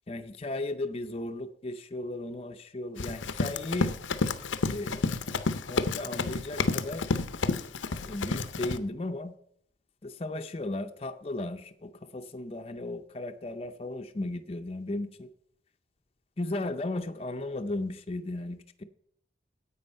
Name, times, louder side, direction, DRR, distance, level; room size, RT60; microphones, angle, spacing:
voice 1, 0.1-3.9 4.7-5.1 5.6-7.1 8.1-9.3 10.0-15.3 16.4-18.8, left 2 dB, 30° left, 6 dB, 0.6 m, -35 dB
Run, 3.0-8.8, left 3 dB, 85° left, 0.7 m, -30 dB
9.8 x 8.4 x 5.4 m, 0.68 s
head